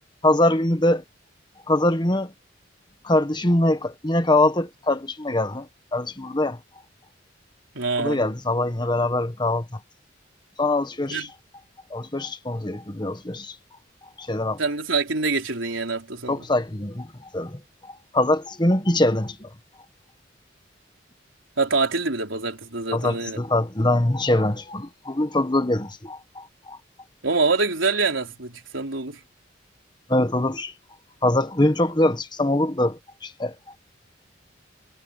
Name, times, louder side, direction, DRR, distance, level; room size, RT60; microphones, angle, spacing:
voice 1, 0.2-1.0 1.7-2.3 3.0-6.6 8.0-9.8 10.6-11.3 11.9-13.5 14.2-14.6 16.3-19.5 22.9-26.8 30.1-30.7 31.2-33.5, left 1 dB, 25° left, 1.4 m, -23 dB
voice 2, 7.7-8.2 11.1-11.3 14.6-16.4 21.6-23.4 27.2-29.2, right 3 dB, 90° right, 4.1 m, -25 dB
head